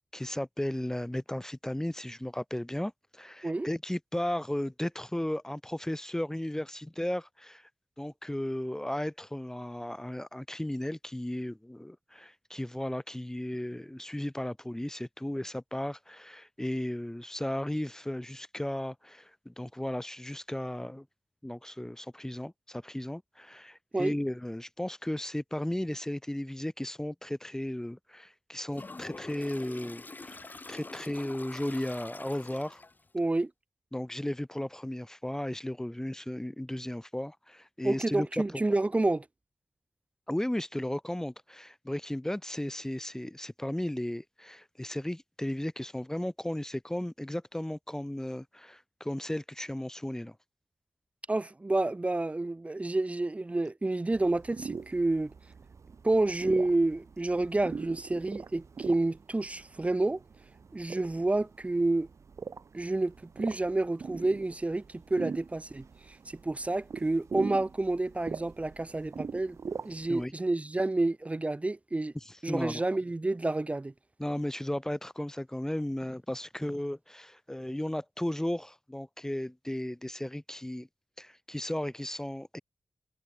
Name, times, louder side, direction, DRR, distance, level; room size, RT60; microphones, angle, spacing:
voice 1, 0.1-7.7 8.0-21.0 21.4-32.8 33.9-38.4 40.3-50.3 70.1-70.3 72.2-72.8 74.2-80.9 81.2-82.6, left 1 dB, 10° left, 0.9 m, -35 dB
Toilet flush, 28.7-33.1, left 3 dB, 35° left, 6.6 m, -45 dB
voice 2, 33.1-33.5 37.8-39.3 51.3-55.3 56.0-60.2 60.7-62.1 62.7-69.6 69.8-72.1 72.4-73.9, right 2 dB, 25° right, 0.9 m, -29 dB
sound 1, 54.1-70.2, right 5 dB, 60° right, 2.6 m, -42 dB
wide cardioid pair, 90°, 6 cm